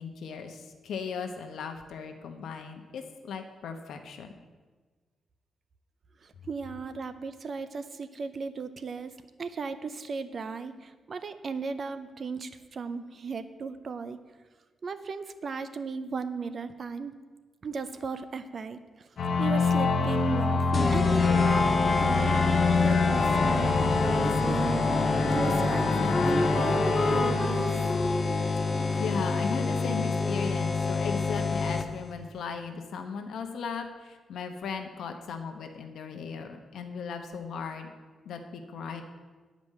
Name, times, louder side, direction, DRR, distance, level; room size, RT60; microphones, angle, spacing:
voice 1, 0.0-4.3 28.9-37.9 38.2-39.0, left 5 dB, 80° left, 5 dB, 1.0 m, -37 dB
voice 2, 6.2-14.2 14.8-17.1 17.6-19.1 19.4-22.4 22.8-24.7 25.2-27.8, right 5 dB, 40° right, 11 dB, 0.6 m, -36 dB
sound 1, 19.2-28.5, left 4 dB, 55° left, 1.0 m, -26 dB
sound 2, 20.7-32.1, left 4 dB, 30° left, 0.6 m, -28 dB
Wind instrument woodwind instrument, 24.0-30.7, left 1 dB, 5° right, 0.9 m, -33 dB
9.8 x 5.2 x 7.5 m, 1.4 s
wide cardioid pair, 140°, 0 cm